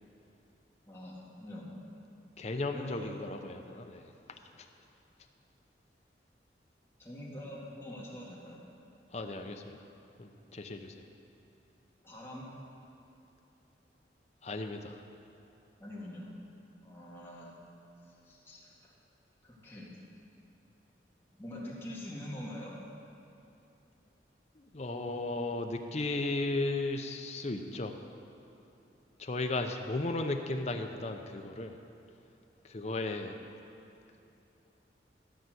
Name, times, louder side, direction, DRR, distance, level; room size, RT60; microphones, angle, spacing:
voice 1, 0.9-1.7 2.7-3.1 7.0-8.6 12.0-12.5 15.8-16.3 16.8-17.5 18.0-18.9 19.4-19.9 21.4-22.8, left 1 dB, 15° left, -6 dB, 2.2 m, -44 dB
voice 2, 2.4-4.1 9.1-9.8 10.2-10.9 14.4-15.0 24.6-28.0 29.2-31.8 32.6-33.4, left 2 dB, 35° left, 5 dB, 0.7 m, -35 dB
13.5 x 5.8 x 7.8 m, 2.9 s
head